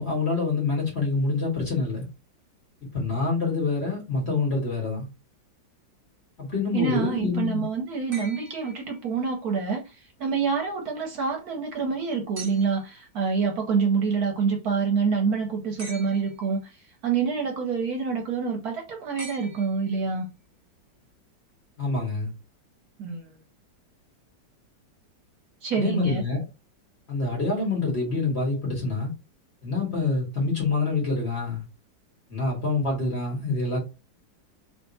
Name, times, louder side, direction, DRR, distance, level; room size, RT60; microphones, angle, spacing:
voice 1, 0.0-2.1 2.9-5.1 6.4-7.6 21.8-22.3 25.8-26.4 27.1-29.1 29.6-31.6 32.3-33.8, left 3 dB, 35° left, 1.7 m, -26 dB
voice 2, 6.7-16.8 17.0-20.3 23.0-23.2 25.6-26.2, right 5 dB, 65° right, 1.2 m, -27 dB
sound 1, 8.1-9.5 12.4-13.0 15.8-16.6 19.2-20.2 21.8-21.9, right 2 dB, 40° right, 1.0 m, -44 dB
3.6 x 2.8 x 3.9 m
omnidirectional pair, 2.0 m